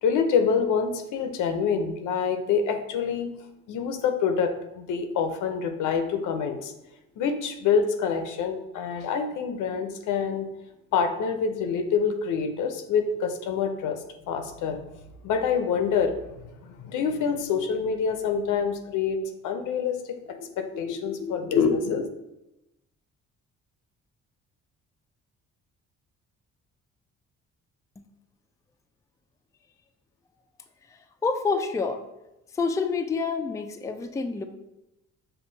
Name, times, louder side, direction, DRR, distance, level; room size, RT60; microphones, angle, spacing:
voice 1, 0.0-3.3 3.7-6.7 7.2-10.5 10.9-14.8 15.2-19.2 19.4-20.0 20.3-22.1, left 6 dB, 80° left, 7 dB, 0.6 m, -26 dB
voice 2, 31.2-32.0 32.5-34.4, left 4 dB, 10° left, 6 dB, 0.3 m, -27 dB
5.6 x 2.3 x 3.9 m, 0.92 s
cardioid pair, 90°, 30 cm